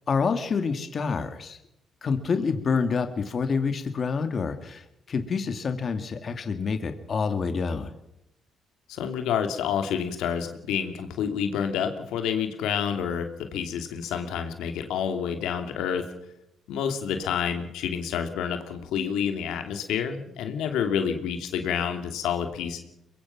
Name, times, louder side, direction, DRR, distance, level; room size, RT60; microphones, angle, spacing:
voice 1, 0.1-1.6 2.0-7.9, left 5 dB, 45° left, 8 dB, 2.0 m, -27 dB
voice 2, 8.9-16.1 16.7-22.8, left 8 dB, 90° left, 6 dB, 2.7 m, -28 dB
23.0 x 22.0 x 5.9 m, 0.82 s
cardioid pair, 90°, 0 cm